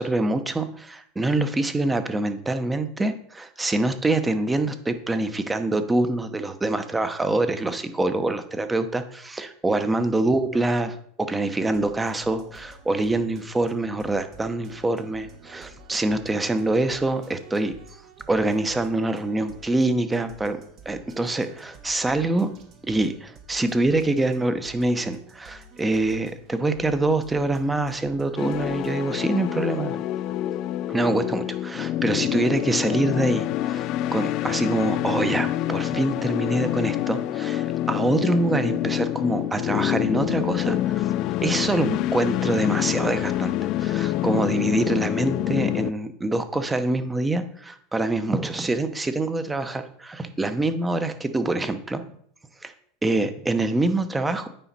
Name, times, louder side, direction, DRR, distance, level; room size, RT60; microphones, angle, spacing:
voice 1, 0.0-17.7 18.3-20.6 20.8-22.5 22.9-30.0 30.9-41.0 41.4-52.0 52.6-52.7 53.0-54.5, right 2 dB, 15° right, 9 dB, 0.9 m, -25 dB
sound 1, 11.6-29.1, right 2 dB, 50° right, 1.4 m, -50 dB
sound 2, 28.4-45.9, left 13 dB, 55° left, 0.3 m, -26 dB
9.0 x 5.1 x 4.2 m, 0.64 s
hypercardioid pair, 95°, 0 cm